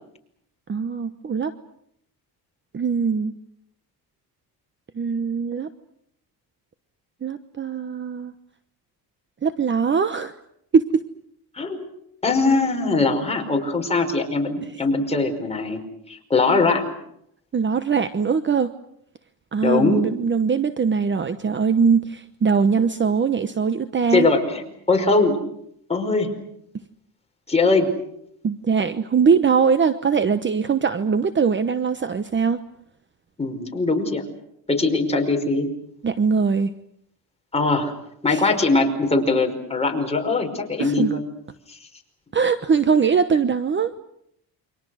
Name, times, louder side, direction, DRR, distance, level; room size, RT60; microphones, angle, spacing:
voice 1, 0.7-1.5 2.7-3.3 4.9-5.7 7.2-8.3 9.4-10.3 10.7-11.0 17.5-18.7 19.5-24.3 28.4-32.6 36.0-36.7 38.3-38.5 40.8-41.1 42.3-43.9, right 6 dB, 30° right, 11 dB, 1.0 m, -21 dB
voice 2, 12.2-15.8 16.1-16.9 19.6-20.1 24.1-25.4 25.9-26.3 27.5-27.9 33.4-34.2 34.7-35.7 37.5-37.9 38.2-41.2, left 3 dB, 15° left, 2 dB, 5.3 m, -21 dB
29.5 x 24.5 x 6.4 m, 0.73 s
cardioid pair, 120°, 39 cm